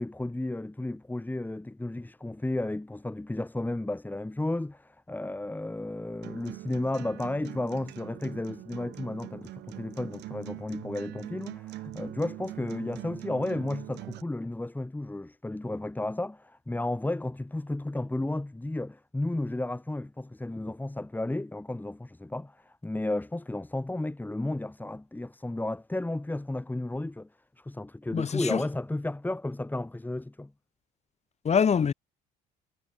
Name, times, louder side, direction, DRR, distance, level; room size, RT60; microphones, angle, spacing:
voice 1, 0.0-27.3 27.6-30.5, left 2 dB, 10° left, 2.3 m, -33 dB
Acoustic guitar, 6.2-14.2, right 17 dB, 70° right, 7.0 m, -43 dB
voice 2, 28.1-28.6 31.5-31.9, left 7 dB, 40° left, 2.0 m, -24 dB
supercardioid pair, 75°, 18 cm